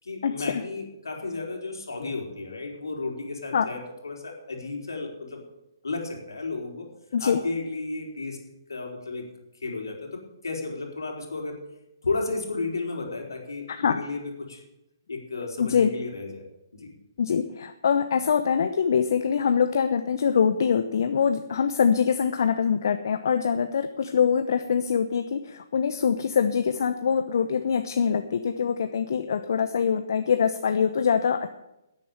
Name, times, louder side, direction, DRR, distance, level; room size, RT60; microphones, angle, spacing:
voice 1, 0.0-5.4 5.8-6.9 7.2-8.4 8.7-9.3 9.5-11.6 12.0-14.6 15.1-16.4 16.7-16.9, left 3 dB, 80° left, 1 dB, 4.0 m, -33 dB
voice 2, 15.6-15.9 17.2-31.5, left 7 dB, 60° left, 8 dB, 0.8 m, -24 dB
10.5 x 9.1 x 9.0 m, 0.91 s
figure-of-eight pair, 130°, 2 cm